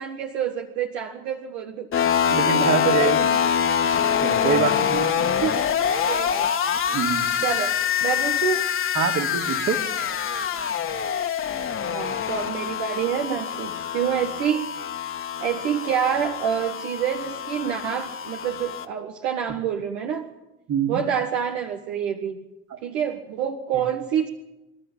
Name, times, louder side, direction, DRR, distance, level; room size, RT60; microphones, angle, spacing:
voice 1, 0.0-1.9 2.4-3.4 4.4-4.6 5.2-5.6 6.1-6.5 7.4-8.7 10.1-10.2 11.9-14.7 15.4-20.3 20.9-22.4 22.8-24.3, right 8 dB, 80° right, 3 dB, 1.6 m, -27 dB
sound 1, 1.9-18.9, left 8 dB, 40° left, 1.6 m, -25 dB
voice 2, 2.3-3.2 4.2-5.1 6.9-7.3 8.9-9.8 20.7-21.0 22.7-22.8 23.7-23.8, right 6 dB, 55° right, 3 dB, 3.1 m, -25 dB
27.0 x 12.5 x 8.8 m, 0.97 s
hypercardioid pair, 65°, 32 cm